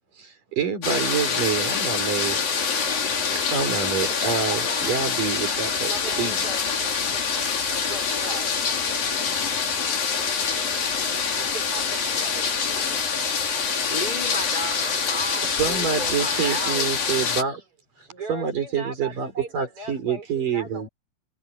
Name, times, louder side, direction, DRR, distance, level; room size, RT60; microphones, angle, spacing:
voice 1, 0.2-2.4 3.5-5.9 6.2-6.4 7.1-7.2 15.6-17.6 18.3-20.9, right 6 dB, 70° right, 6.6 m, -27 dB
sound 1, 0.8-17.4, left 6 dB, 85° left, 5.8 m, -25 dB
voice 2, 4.5-5.1 5.8-6.6 7.7-8.5 10.1-10.2 11.3-13.0 18.1-20.9, right 3 dB, 40° right, 6.4 m, -39 dB
voice 3, 13.6-16.9, right 1 dB, 10° left, 5.8 m, -34 dB
omnidirectional pair, 3.9 m